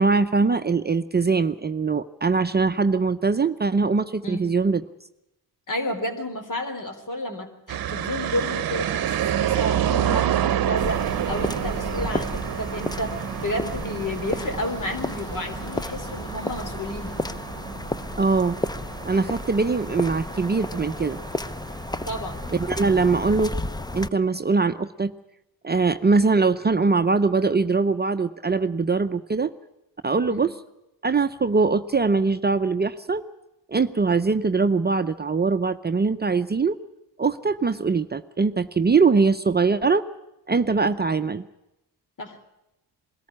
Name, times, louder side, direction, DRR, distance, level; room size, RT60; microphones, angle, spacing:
voice 1, 0.0-4.8 18.2-18.6 19.0-21.2 22.7-23.5 23.9-25.1 25.6-29.5 30.0-30.5 31.0-33.2 33.7-36.8 37.2-40.0 40.5-41.4, right 4 dB, 25° right, 9 dB, 0.7 m, -22 dB
voice 2, 5.7-17.1 22.1-22.4 30.3-30.4 42.2-42.4, left 1 dB, 50° left, 6 dB, 3.8 m, -31 dB
sound 1, 7.7-23.1, right 10 dB, 60° right, 0.9 m, -29 dB
sound 2, 10.8-24.1, left 2 dB, 10° left, 0.7 m, -32 dB
21.5 x 13.5 x 9.8 m, 0.92 s
cardioid pair, 60°, 40 cm